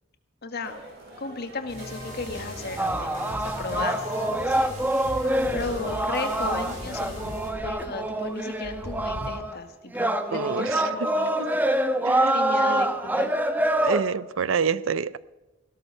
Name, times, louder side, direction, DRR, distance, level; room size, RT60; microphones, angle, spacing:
voice 1, 0.4-0.8 1.2-4.0 4.3-4.7 5.5-7.3 7.6-11.3 12.3-13.3, left 3 dB, 55° left, 1.6 m, -34 dB
sound 1, 0.6-9.3, equal, 55° right, 4.8 m, -43 dB
sound 2, 1.7-7.5, equal, 40° right, 6.5 m, -38 dB
sound 3, 2.8-9.6 9.9-14.0, right 1 dB, 10° right, 1.0 m, -26 dB
voice 2, 10.3-10.9 11.4-11.5 12.0-12.4 13.8-15.2, right 6 dB, 80° right, 0.5 m, -27 dB
16.5 x 13.0 x 5.4 m
head